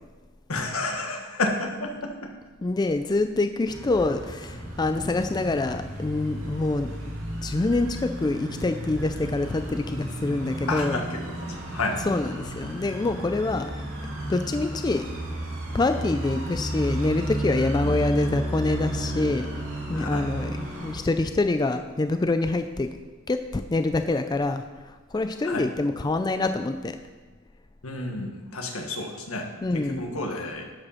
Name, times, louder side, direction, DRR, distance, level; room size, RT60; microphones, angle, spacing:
voice 1, 0.5-2.3 10.7-11.2 11.7-12.0 17.8-18.0 19.9-20.3 25.4-25.7 27.8-30.7, left 2 dB, 85° left, 3 dB, 1.6 m, -30 dB
voice 2, 2.6-6.9 7.4-11.0 12.1-13.7 14.3-15.1 15.7-19.5 19.9-23.0 23.3-24.6 25.1-27.0 29.6-30.1, left 2 dB, 20° left, 8 dB, 0.3 m, -26 dB
sound 1, 3.6-21.0, right 1 dB, 75° right, 2.3 m, -33 dB
12.5 x 5.2 x 5.7 m, 1.3 s
head